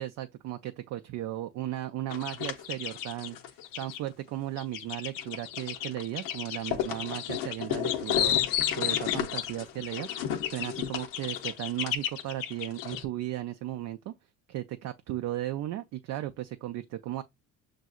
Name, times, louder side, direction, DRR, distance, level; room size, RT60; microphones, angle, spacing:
voice 1, 0.0-10.1 10.4-14.1 14.5-17.2, right 13 dB, 55° right, 0.4 m, -36 dB
sound 1, 2.1-4.0 4.6-13.0, left 11 dB, 75° left, 0.7 m, -32 dB
6.2 x 2.7 x 2.3 m
supercardioid pair, 80°, 33 cm